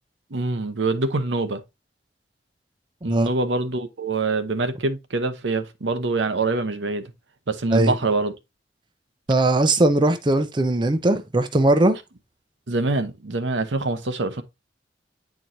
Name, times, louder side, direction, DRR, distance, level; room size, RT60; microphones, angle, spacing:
voice 1, 0.3-1.6 3.0-7.0 7.5-8.3 12.7-14.4, right 3 dB, 75° right, 0.9 m, -25 dB
voice 2, 9.3-12.0, right 2 dB, 25° right, 0.6 m, -19 dB
8.9 x 4.6 x 2.7 m
head